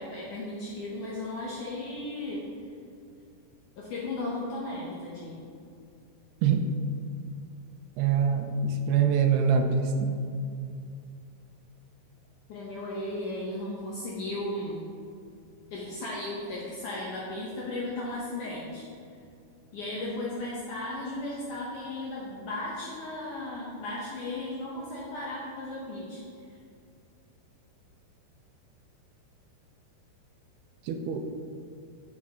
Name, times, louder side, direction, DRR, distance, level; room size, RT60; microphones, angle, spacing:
voice 1, 0.0-2.5 3.8-5.4 12.5-14.8 15.7-18.9 19.7-26.2, left 2 dB, 75° left, -5 dB, 1.9 m, -35 dB
voice 2, 8.0-10.2 30.9-31.3, right 6 dB, 80° right, 5 dB, 2.6 m, -24 dB
9.5 x 7.1 x 3.7 m, 2.5 s
omnidirectional pair, 4.9 m